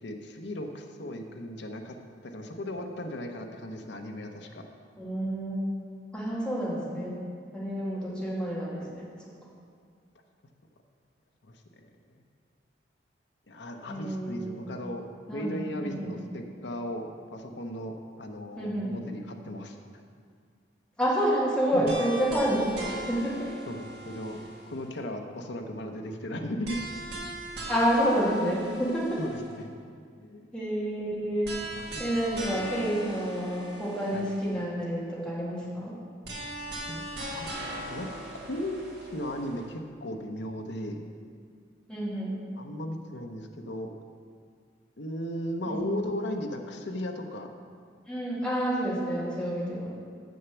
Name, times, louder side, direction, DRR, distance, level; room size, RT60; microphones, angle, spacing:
voice 1, 0.0-2.0 2.2-4.6 11.4-11.5 13.5-15.1 15.3-19.8 21.7-22.0 23.7-24.4 24.7-26.7 29.2-29.7 30.2-30.4 31.7-32.0 32.3-32.6 34.1-34.2 36.9-38.1 38.3-38.8 39.1-41.1 42.5-43.9 45.0-47.5, left 1 dB, 70° left, 3 dB, 0.8 m, -36 dB
voice 2, 5.0-5.8 6.1-7.1 7.5-9.1 13.9-14.6 15.3-16.1 18.6-18.9 21.0-23.5 27.7-29.0 30.5-31.5 32.0-35.9 41.9-42.4 45.7-46.0 48.1-49.9, equal, 5° left, -7 dB, 1.9 m, -29 dB
sound 1, 21.9-25.0 26.6-29.6 31.4-34.6 36.2-39.7, right 1 dB, 60° right, 1.8 m, -40 dB
7.0 x 6.5 x 6.9 m, 2.1 s
head